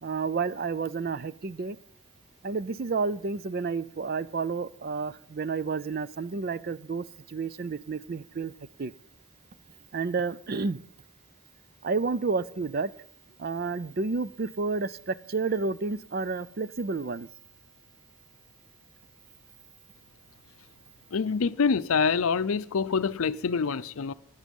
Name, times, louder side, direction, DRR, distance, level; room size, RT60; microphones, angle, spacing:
voice 1, 0.0-1.8 2.4-8.5 8.8-8.9 9.9-10.8 11.8-12.9 13.4-17.3, right 4 dB, 45° right, 0.4 m, -30 dB
voice 2, 21.1-24.1, left 5 dB, 75° left, 0.5 m, -26 dB
12.5 x 11.0 x 5.3 m
head